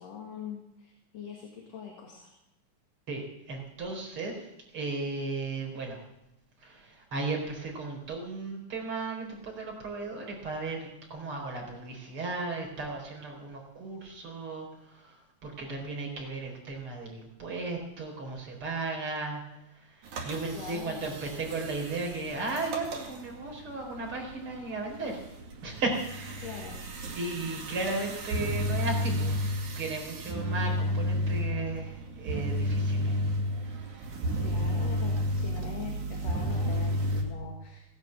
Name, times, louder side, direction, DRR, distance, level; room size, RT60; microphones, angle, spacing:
voice 1, 0.0-2.3 20.5-21.2 26.4-26.8 34.4-37.8, left 6 dB, 60° left, 1 dB, 3.0 m, -43 dB
voice 2, 3.1-4.3 4.7-6.0 6.6-14.7 14.9-15.1 15.4-19.4 20.0-25.2 25.6-26.5 27.1-29.4 29.8-33.2 33.6-34.2, right 3 dB, 45° right, 0 dB, 4.9 m, -35 dB
sound 1, 20.0-37.2, equal, 75° right, 3.7 m, -32 dB
17.0 x 10.5 x 7.8 m, 0.89 s
omnidirectional pair, 3.5 m